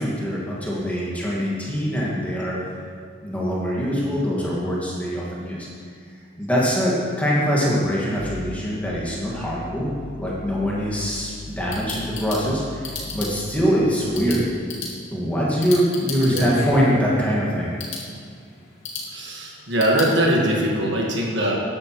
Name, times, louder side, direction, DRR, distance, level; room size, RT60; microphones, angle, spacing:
voice 1, 0.0-2.6 3.2-5.7 6.4-14.4 15.1-17.7, equal, 5° left, -6 dB, 1.8 m, -23 dB
sound 1, 8.2-13.6, left 4 dB, 25° left, 0.6 m, -40 dB
sound 2, 11.4-20.1, left 4 dB, 80° left, 2.2 m, -37 dB
voice 2, 19.1-21.6, right 1 dB, 60° right, -2 dB, 1.6 m, -21 dB
13.0 x 9.9 x 3.1 m, 2.2 s
head